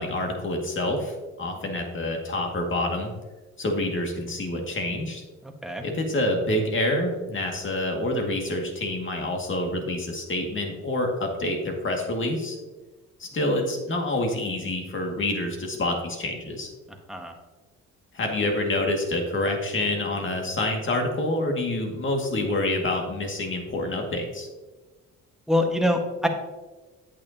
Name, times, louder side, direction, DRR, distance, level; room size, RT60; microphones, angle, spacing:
voice 1, 0.0-3.1 3.6-5.2 5.8-12.6 13.2-16.7 18.1-24.5, left 1 dB, 40° left, 2 dB, 2.0 m, -27 dB
voice 2, 25.5-26.3, left 1 dB, ahead, 2 dB, 1.4 m, -24 dB
9.0 x 8.3 x 2.8 m, 1.2 s
cardioid pair, 90°, 30 cm